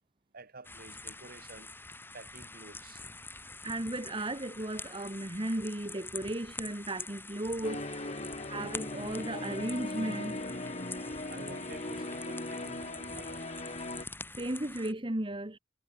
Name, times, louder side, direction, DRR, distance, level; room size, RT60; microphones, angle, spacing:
voice 1, 0.3-1.7 2.1-3.0 11.3-13.5, right 3 dB, 50° right, 2.9 m, -50 dB
sound 1, 0.6-14.9, left 3 dB, 10° left, 3.7 m, -46 dB
voice 2, 3.6-8.2 8.5-10.4 14.4-15.6, right 1 dB, 25° right, 1.8 m, -35 dB
sound 2, 7.6-14.1, left 2 dB, 35° left, 3.0 m, -39 dB
head